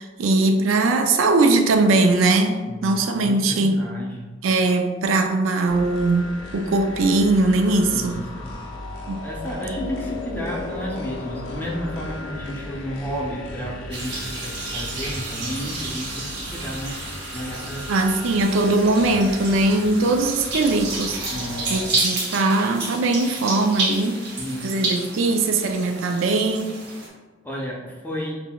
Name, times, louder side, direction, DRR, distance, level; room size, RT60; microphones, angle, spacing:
voice 1, 0.0-3.9 4.4-8.2 9.1-9.2 17.9-21.2 21.7-24.2 24.6-26.8, right 2 dB, 85° right, 5 dB, 0.4 m, -20 dB
voice 2, 2.7-4.3 7.9-8.5 9.2-17.0 17.3-17.9 21.3-22.0 24.4-24.8 27.4-28.4, equal, 10° left, -3 dB, 0.6 m, -32 dB
sound 1, 5.7-21.9, left 2 dB, 65° left, 0.5 m, -36 dB
sound 2, 13.9-27.1, right 3 dB, 60° right, 0.9 m, -31 dB
5.8 x 2.1 x 2.2 m, 1.3 s
head